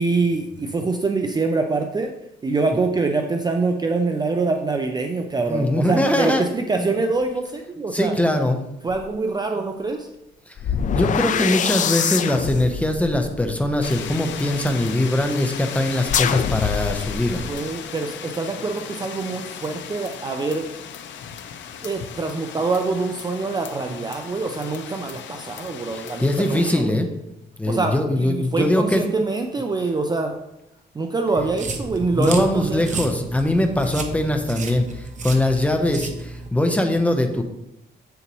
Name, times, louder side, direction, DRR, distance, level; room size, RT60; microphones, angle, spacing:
voice 1, 0.0-2.1 2.4-8.1 8.8-10.1 17.4-20.7 21.8-27.0 27.7-30.3 30.9-32.8, right 3 dB, 20° right, 4 dB, 0.5 m, -25 dB
voice 2, 5.5-6.5 6.8-6.9 7.9-8.6 10.9-17.5 25.9-27.1 27.6-29.1 32.1-37.4, left 1 dB, 5° left, 5 dB, 0.8 m, -21 dB
sound 1, 8.9-9.1 10.6-14.7 16.1-17.5, left 8 dB, 45° left, 0.4 m, -25 dB
sound 2, 13.8-26.8, left 8 dB, 80° left, 0.7 m, -36 dB
sound 3, 31.4-36.5, right 3 dB, 40° right, 0.9 m, -32 dB
8.1 x 6.9 x 3.1 m, 0.85 s
cardioid pair, 130°, 19 cm